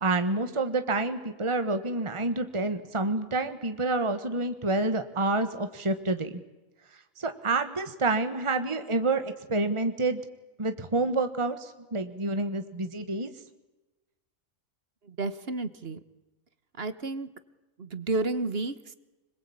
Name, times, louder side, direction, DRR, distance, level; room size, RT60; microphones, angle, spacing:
voice 1, 0.0-6.3 7.2-10.2 10.6-13.3, right 2 dB, 25° right, 8 dB, 1.5 m, -28 dB
voice 2, 15.0-16.0 16.8-17.3 17.8-18.9, right 2 dB, 50° right, 13 dB, 1.4 m, -31 dB
26.0 x 21.5 x 8.8 m, 1.1 s
omnidirectional pair, 1.3 m